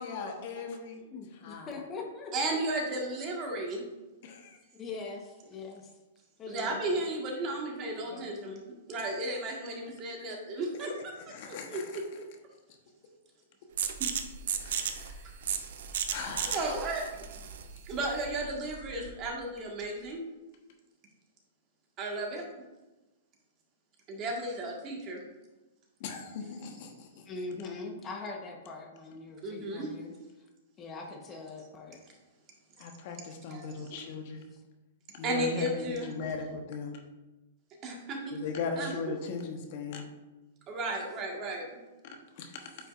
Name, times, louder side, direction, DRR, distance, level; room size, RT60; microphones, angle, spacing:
voice 1, 0.0-1.0 1.4-1.7 4.2-4.6 8.1-8.6 10.8-10.9 11.3-12.0 14.6-15.2 16.1-16.7 26.0-27.3 32.8-34.4 35.1-37.0 38.4-40.0 42.0-42.6, left 4 dB, 55° left, 3 dB, 1.2 m, -39 dB
voice 2, 1.0-2.3 4.7-5.9 6.4-7.1 27.2-30.1 30.8-32.0 34.5-34.6, left 3 dB, 25° left, 1 dB, 1.1 m, -42 dB
voice 3, 2.3-3.8 6.5-10.9 11.5-12.2 14.0-14.1 15.1-15.4 16.4-17.2 17.8-20.2 22.0-22.5 24.1-25.3 29.4-30.3 31.3-31.4 33.5-34.1 35.2-36.1 37.8-38.4 38.8-39.1 40.7-41.7, right 2 dB, 35° right, 0 dB, 1.7 m, -34 dB
sound 1, 13.8-19.3, right 8 dB, 65° right, 0.7 m, -35 dB
9.1 x 5.3 x 2.6 m, 1.1 s
hypercardioid pair, 125°, 0 cm